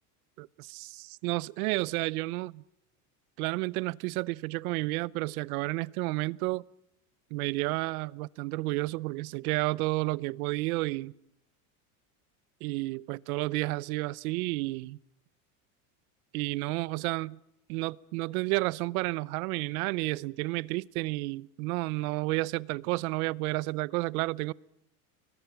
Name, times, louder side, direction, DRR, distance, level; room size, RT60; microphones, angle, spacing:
voice 1, 0.4-2.6 3.4-6.6 7.3-11.1 12.6-15.0 16.3-17.4 17.7-24.5, right 22 dB, 70° right, 0.8 m, -31 dB
30.0 x 22.5 x 5.9 m
supercardioid pair, 130°, 45 cm